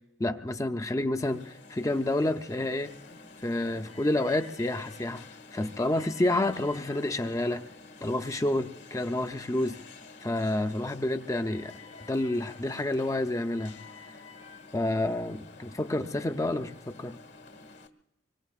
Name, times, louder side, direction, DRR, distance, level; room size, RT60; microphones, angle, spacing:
voice 1, 0.2-2.9 3.4-7.7 8.0-9.8 10.2-11.7 12.0-13.8 14.7-17.2, left 1 dB, 15° left, 8 dB, 0.5 m, -29 dB
Alarm, 1.2-17.9, left 4 dB, 65° left, 1.3 m, -49 dB
25.5 x 23.0 x 2.4 m, 0.91 s
head